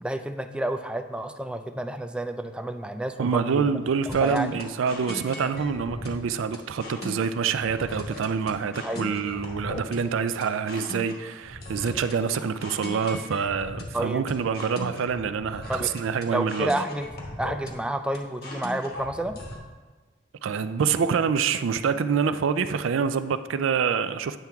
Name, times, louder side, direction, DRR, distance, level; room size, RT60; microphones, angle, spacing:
voice 1, 0.0-3.7 4.1-4.6 8.8-9.2 13.9-14.3 15.7-15.9 16.3-17.1 17.4-19.4, right 1 dB, 5° right, 0.3 m, -30 dB
voice 2, 3.2-16.7 20.4-24.4, right 6 dB, 90° right, 0.4 m, -26 dB
sound 1, 4.1-19.6, left 1 dB, 50° left, 1.2 m, -39 dB
9.0 x 5.7 x 3.5 m
head